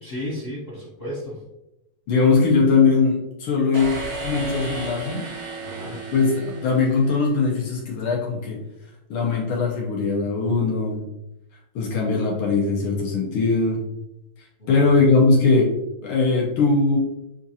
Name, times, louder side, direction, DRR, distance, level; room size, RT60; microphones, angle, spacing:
voice 1, 0.0-1.4 5.6-6.0 14.6-15.0, left 1 dB, 55° left, -5 dB, 0.6 m, -34 dB
voice 2, 2.1-5.3 6.1-8.6 9.1-11.1 11.8-13.8 14.7-15.7 16.0-17.0, left 4 dB, 75° left, -3 dB, 1.7 m, -20 dB
sound 1, 3.7-7.6, right 3 dB, 55° right, 2.1 m, -34 dB
7.2 x 2.5 x 2.7 m, 0.89 s
omnidirectional pair, 2.4 m